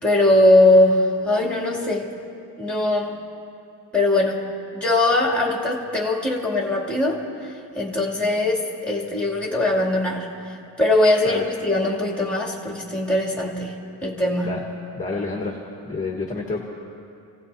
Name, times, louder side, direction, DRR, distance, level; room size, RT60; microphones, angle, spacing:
voice 1, 0.0-2.1 2.6-3.1 3.9-4.4 4.7-7.2 7.8-13.7 14.0-14.6, left 2 dB, ahead, -2 dB, 2.7 m, -20 dB
voice 2, 15.0-15.6 15.8-16.6, left 3 dB, 20° left, -1 dB, 1.4 m, -28 dB
29.0 x 17.0 x 2.8 m, 2.6 s
cardioid pair, 140°, 42 cm